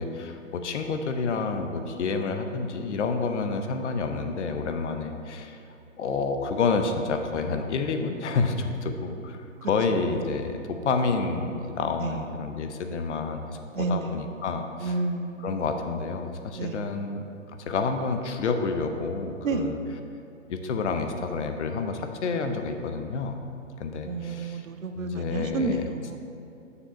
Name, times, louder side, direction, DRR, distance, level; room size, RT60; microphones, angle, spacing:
voice 1, 0.0-5.6 6.0-14.9 15.4-17.2 17.7-19.8 20.5-23.4 23.8-24.7 24.9-25.8, left 4 dB, 60° left, 6 dB, 0.8 m, -29 dB
voice 2, 9.6-10.0 10.4-10.5 12.0-12.2 13.7-14.2 14.8-15.6 16.5-16.9 19.4-19.7 24.0-26.2, right 3 dB, 85° right, 7 dB, 0.7 m, -31 dB
6.6 x 4.9 x 5.3 m, 2.6 s
hypercardioid pair, 140°, 39 cm